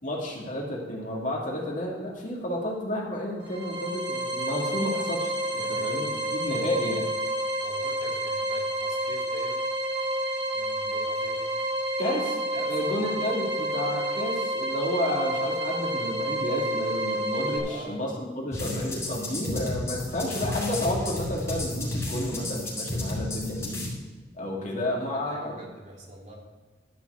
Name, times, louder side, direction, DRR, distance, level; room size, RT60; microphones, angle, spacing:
voice 1, 0.0-7.1 12.0-23.8 24.3-25.7, left 1 dB, 45° left, -3 dB, 2.3 m, -31 dB
sound 1, 3.4-17.6, right 1 dB, 70° right, 1.9 m, -29 dB
voice 2, 5.5-6.3 7.6-9.6 10.5-11.5 12.5-12.8 17.6-18.0 24.5-26.4, right 1 dB, 45° right, -3 dB, 2.7 m, -45 dB
sound 2, 18.5-23.9, left 1 dB, 15° left, 4.0 m, -32 dB
12.0 x 5.9 x 6.6 m, 1.3 s
head